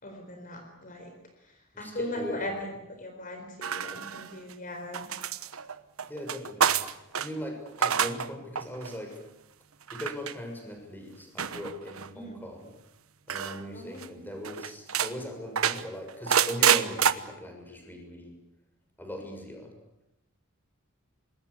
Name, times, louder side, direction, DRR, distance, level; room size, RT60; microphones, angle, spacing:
voice 1, 0.0-1.1 1.8-2.7 3.0-5.1 12.1-12.4 13.7-14.2, left 1 dB, 40° left, 4 dB, 4.3 m, -38 dB
voice 2, 1.7-2.7 6.1-9.2 9.9-12.8 13.3-18.4 19.0-19.7, left 1 dB, 10° left, 4 dB, 6.5 m, -40 dB
sound 1, 3.6-4.5 4.9-7.3 7.7-8.3 8.6-8.9 9.9-10.3 11.4-12.1 13.3-13.6 14.0-14.1 14.4-15.1 15.6-17.1, right 8 dB, 85° right, 1.2 m, -27 dB
25.5 x 21.0 x 8.5 m, 0.89 s
head